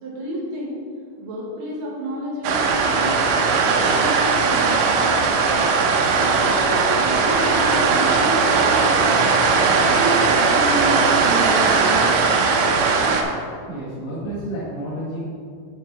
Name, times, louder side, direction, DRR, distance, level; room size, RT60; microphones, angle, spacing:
voice 1, 0.0-0.8 1.2-3.3 3.6-5.4 6.0-9.3 9.8-12.8, right 1 dB, 65° right, -5 dB, 2.4 m, -30 dB
sound 1, 2.4-13.2, right 4 dB, 85° right, 3.3 m, -18 dB
voice 2, 13.7-15.2, right 1 dB, 60° left, -10 dB, 3.5 m, -30 dB
8.3 x 6.0 x 4.5 m, 2.2 s
omnidirectional pair, 5.7 m